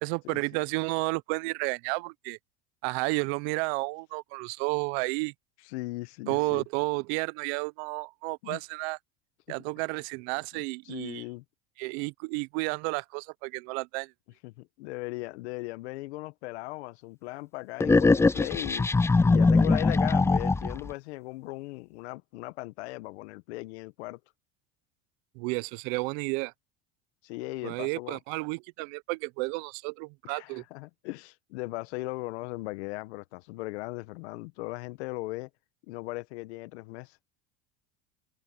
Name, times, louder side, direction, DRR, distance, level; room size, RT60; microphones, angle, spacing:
voice 1, 0.0-2.4 2.8-5.3 6.3-9.0 9.5-11.2 11.8-14.1 25.4-26.5 27.6-30.6, right 28 dB, 70° right, 0.8 m, -31 dB
voice 2, 5.7-6.6 8.4-8.6 10.5-11.4 14.4-18.9 19.3-24.2 27.2-28.2 30.3-35.5 35.9-37.2, left 21 dB, 80° left, 1.1 m, -38 dB
sound 1, 17.8-20.9, left 3 dB, 10° left, 0.4 m, -22 dB
supercardioid pair, 95°, 33 cm